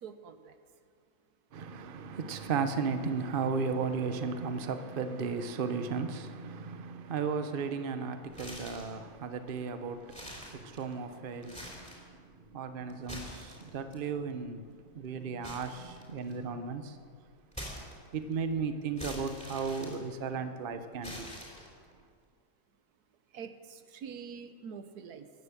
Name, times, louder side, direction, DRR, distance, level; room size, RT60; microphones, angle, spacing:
voice 1, 0.0-0.6 23.3-25.3, right 6 dB, 85° right, 1.4 m, -45 dB
voice 2, 1.5-17.0 18.1-21.3, right 5 dB, 45° right, 0.9 m, -35 dB
sound 1, 8.3-9.0 9.5-9.6 10.0-11.0 11.4-12.1 12.9-13.9 15.4-16.5 17.5-18.3 19.0-20.5 21.0-21.9, equal, 5° left, 3.6 m, -44 dB
15.0 x 10.5 x 7.2 m
omnidirectional pair, 1.6 m